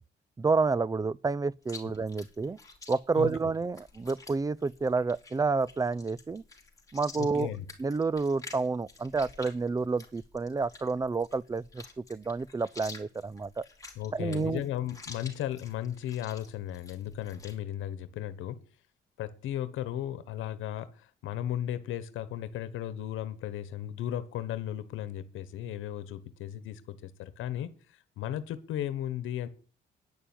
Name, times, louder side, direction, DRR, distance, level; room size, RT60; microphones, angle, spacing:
voice 1, 0.4-2.6 2.9-6.4 6.9-7.5 7.8-13.7 14.1-14.6, right 4 dB, 20° right, 0.5 m, -29 dB
Chewing mastication, 1.6-17.6, left 3 dB, 15° left, 3.9 m, -50 dB
voice 2, 7.2-7.6 13.9-18.6 19.2-29.5, left 11 dB, 85° left, 1.2 m, -35 dB
10.5 x 6.9 x 8.9 m
cardioid pair, 90°, 20 cm